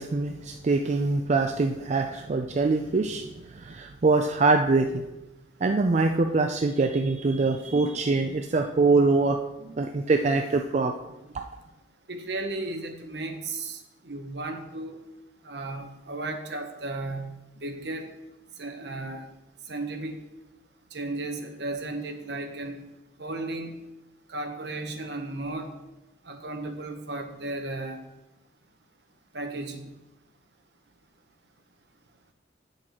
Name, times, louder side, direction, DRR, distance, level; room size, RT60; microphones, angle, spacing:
voice 1, 0.0-5.0 5.6-10.9, right 3 dB, 40° right, 5 dB, 0.4 m, -24 dB
voice 2, 12.1-13.8 14.0-15.0 15.4-18.1 18.6-19.3 19.7-20.1 20.9-22.8 23.2-23.8 24.3-25.7 26.3-28.0 29.3-29.9, right 2 dB, 65° right, 5 dB, 1.1 m, -34 dB
9.0 x 6.5 x 4.3 m, 0.97 s
head